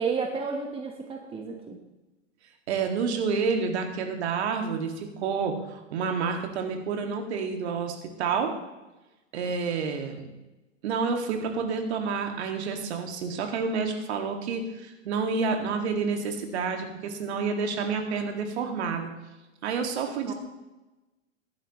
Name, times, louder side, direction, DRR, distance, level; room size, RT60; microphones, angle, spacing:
voice 1, 0.0-1.8 20.3-20.4, right 5 dB, 15° right, 3 dB, 1.3 m, -31 dB
voice 2, 2.7-8.5 9.3-10.2 10.8-19.1 19.6-20.3, right 5 dB, 60° right, 4 dB, 2.2 m, -29 dB
15.0 x 11.0 x 3.1 m, 1.0 s
hypercardioid pair, 105°, 37 cm